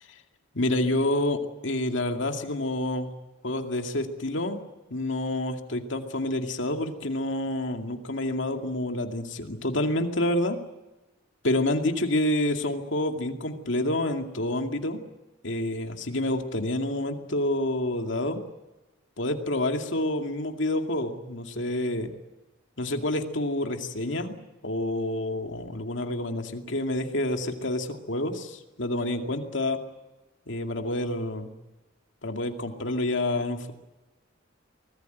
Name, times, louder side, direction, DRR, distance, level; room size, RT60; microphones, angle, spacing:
voice 1, 0.5-3.1 3.4-4.6 4.9-10.6 11.4-15.0 15.4-18.4 19.2-22.1 22.8-24.3 24.6-29.8 30.5-31.5 32.2-33.7, left 1 dB, 65° left, 5 dB, 2.4 m, -28 dB
24.5 x 19.0 x 9.2 m, 1.1 s
head